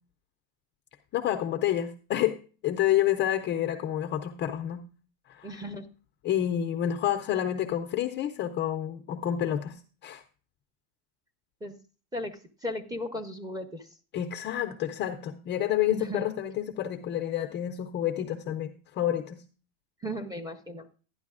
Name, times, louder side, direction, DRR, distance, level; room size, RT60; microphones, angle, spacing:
voice 1, 1.1-4.8 5.3-5.5 6.2-10.2 14.1-19.4, left 11 dB, 25° left, 6 dB, 0.4 m, -29 dB
voice 2, 5.4-5.9 11.6-11.8 12.1-13.9 15.9-16.3 20.0-20.9, left 1 dB, 10° right, 4 dB, 0.7 m, -36 dB
11.5 x 10.5 x 2.4 m, 0.37 s
supercardioid pair, 130°, 45 cm